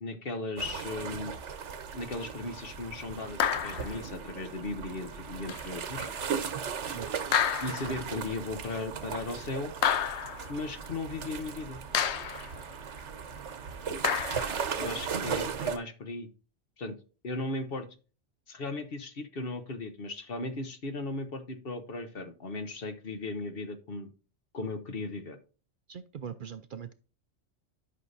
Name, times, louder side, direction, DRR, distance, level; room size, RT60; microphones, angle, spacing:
voice 1, 0.0-1.3 1.9-6.1 7.6-9.7 10.5-11.8 14.8-16.3 16.8-16.9 17.2-17.9 18.5-24.1 24.5-25.4, left 2 dB, 55° left, 1.1 m, -37 dB
sound 1, 0.6-15.8, right 6 dB, 85° right, 1.2 m, -37 dB
sound 2, 3.4-4.0 5.5-5.7 7.3-8.0 9.8-10.5 11.9-12.5 14.0-14.6, left 9 dB, 75° left, 0.9 m, -29 dB
voice 2, 25.9-26.9, right 8 dB, 55° right, 0.6 m, -41 dB
11.0 x 5.8 x 2.6 m
omnidirectional pair, 1.2 m